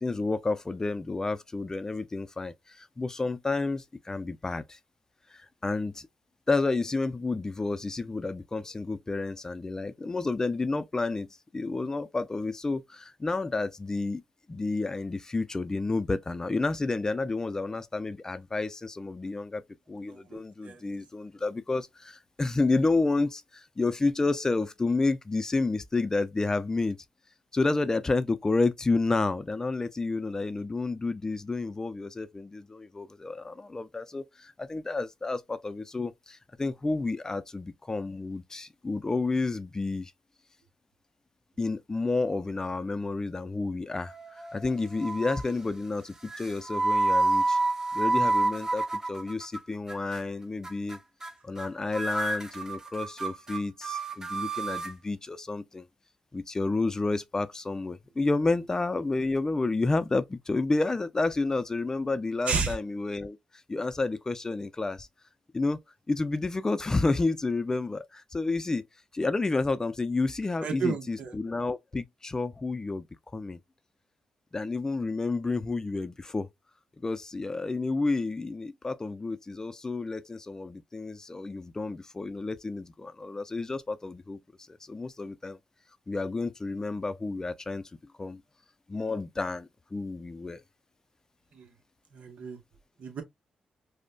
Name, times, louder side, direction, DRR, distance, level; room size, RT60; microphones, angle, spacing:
voice 1, 0.0-4.8 5.3-6.1 6.5-11.3 11.5-14.2 14.5-19.6 19.9-27.0 27.5-40.1 41.6-47.6 47.9-51.0 51.4-55.9 56.3-63.4 63.7-65.1 65.5-65.8 66.1-68.8 69.1-73.0 73.3-73.6 74.5-76.5 77.0-84.4 84.7-85.6 86.1-87.8 88.2-88.4 88.9-90.6, left 3 dB, 25° left, 0.4 m, -30 dB
voice 2, 20.1-20.4 20.6-20.8 62.5-62.7 70.6-71.3 91.6-91.7 92.1-92.6 93.0-93.2, right 5 dB, 65° right, 0.9 m, -31 dB
sound 1, 44.1-44.7 45.0-45.5 46.3-49.6 49.9-50.2 50.6-51.0 51.2-51.3 51.6-51.7 51.9-54.9, right 2 dB, 25° right, 0.6 m, -29 dB
5.0 x 2.1 x 2.2 m
cardioid pair, 65°, 2 cm